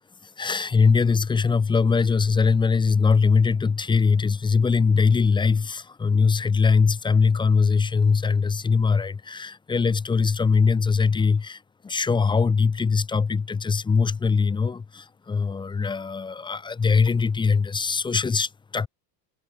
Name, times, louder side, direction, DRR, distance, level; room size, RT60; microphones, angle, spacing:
voice 1, 0.4-18.9, left 5 dB, 10° left, 0.7 m, -21 dB
cardioid pair, 175°, 48 cm